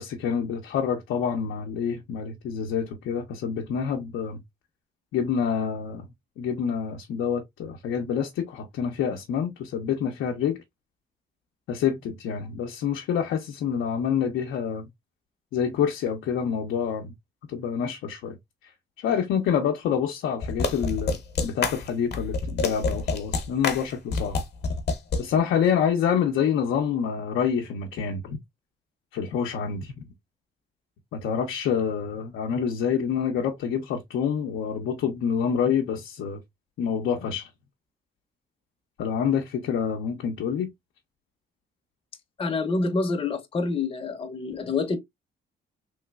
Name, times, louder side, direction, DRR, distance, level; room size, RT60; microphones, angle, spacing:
voice 1, 0.0-4.4 5.1-6.1 6.4-10.6 11.7-14.9 15.5-17.1 17.5-18.4 19.0-24.4 25.2-28.4 29.1-29.9 31.1-36.4 36.8-37.5 39.0-40.7, left 7 dB, 80° left, 0.6 m, -27 dB
sound 1, 20.4-25.2, left 4 dB, 55° left, 0.9 m, -27 dB
voice 2, 42.4-45.0, left 3 dB, 30° left, 0.6 m, -27 dB
3.1 x 2.9 x 2.2 m
cardioid pair, 90°, 20 cm